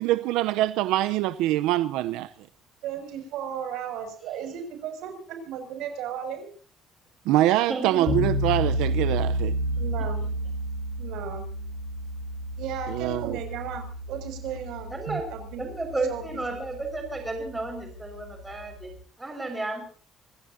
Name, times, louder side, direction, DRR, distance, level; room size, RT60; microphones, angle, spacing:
voice 1, 0.0-2.3 7.3-9.6 12.9-13.4 15.1-15.2, right 15 dB, 85° right, 0.6 m, -24 dB
voice 2, 2.8-6.5 9.6-10.2 11.0-11.5 12.6-14.9 15.3-15.7 16.1-16.2, right 8 dB, 70° right, 6.1 m, -35 dB
voice 3, 7.7-8.3 14.9-15.3 15.6-19.8, right 2 dB, 10° right, 5.2 m, -33 dB
sound 1, 8.1-19.0, equal, 50° left, 3.9 m, -31 dB
26.0 x 16.5 x 2.7 m
cardioid pair, 165°, 0 cm